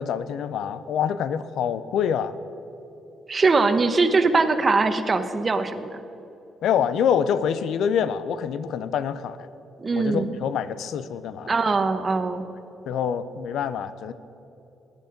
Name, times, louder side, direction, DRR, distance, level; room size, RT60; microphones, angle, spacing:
voice 1, 0.0-2.3 6.6-9.5 10.0-11.5 12.3-12.4 12.9-14.1, left 8 dB, 75° left, 14 dB, 0.5 m, -26 dB
voice 2, 3.3-6.0 9.8-10.3 11.5-12.4, right 3 dB, 35° right, 9 dB, 1.0 m, -21 dB
16.0 x 11.0 x 5.2 m, 3.0 s
cardioid pair, 90°, 0 cm